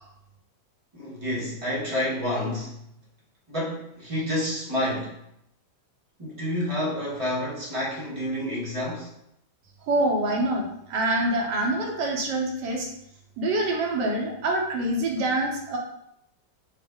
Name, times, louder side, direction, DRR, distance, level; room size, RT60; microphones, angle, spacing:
voice 1, 0.9-2.7 3.5-5.1 6.2-9.1, left 1 dB, 35° right, -7 dB, 0.5 m, -29 dB
voice 2, 9.9-12.9 13.4-15.8, right 1 dB, 65° right, -1 dB, 1.3 m, -25 dB
4.8 x 2.0 x 3.5 m, 0.77 s
omnidirectional pair, 2.2 m